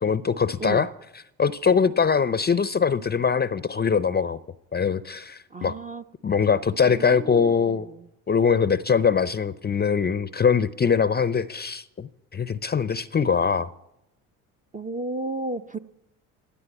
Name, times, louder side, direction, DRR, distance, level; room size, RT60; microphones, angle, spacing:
voice 1, 0.0-0.9 1.4-4.4 4.7-5.7 6.2-7.9 8.3-13.7, left 6 dB, 25° left, 16 dB, 0.6 m, -22 dB
voice 2, 5.5-6.0 6.8-8.1 14.7-15.8, right 3 dB, 20° right, 8 dB, 0.6 m, -33 dB
17.0 x 9.7 x 8.2 m, 0.85 s
hypercardioid pair, 65°, 41 cm